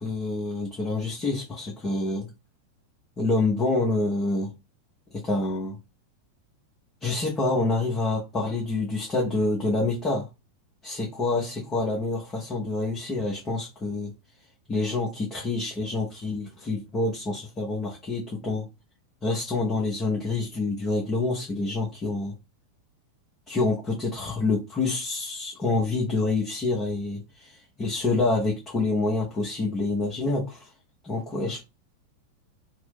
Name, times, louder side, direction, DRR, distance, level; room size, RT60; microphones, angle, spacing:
voice 1, 0.0-2.3 3.2-4.5 5.1-5.8 7.0-10.3 10.8-14.1 14.7-18.7 19.2-22.4 23.5-27.2 27.8-30.7 31.0-31.6, left 3 dB, 20° left, 0.8 m, -27 dB
2.8 x 2.0 x 3.4 m
figure-of-eight pair, 90°, 0 cm